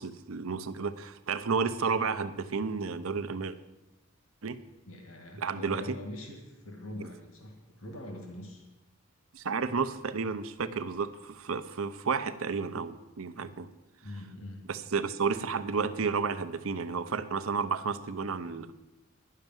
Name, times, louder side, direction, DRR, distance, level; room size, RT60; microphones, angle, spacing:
voice 1, 0.0-3.6 4.4-4.6 5.4-6.0 9.3-13.7 14.6-18.7, right 5 dB, 80° right, 12 dB, 0.7 m, -32 dB
voice 2, 4.8-8.7 14.0-14.7, left 1 dB, 80° left, 2 dB, 1.8 m, -43 dB
10.5 x 6.7 x 9.0 m, 1.0 s
head